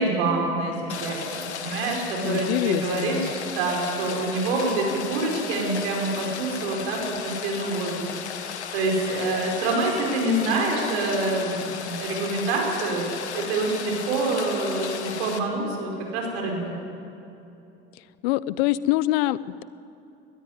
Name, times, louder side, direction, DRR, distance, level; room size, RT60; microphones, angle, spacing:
voice 1, 0.0-8.0 8.7-13.0 13.3-16.7, right 2 dB, 75° right, 1 dB, 5.5 m, -26 dB
Rain, 0.9-15.4, left 7 dB, 85° left, 1.4 m, -35 dB
voice 2, 2.2-3.3 18.2-19.6, left 16 dB, 70° left, 19 dB, 0.7 m, -25 dB
20.0 x 14.0 x 9.7 m, 2.8 s
hypercardioid pair, 75°, 33 cm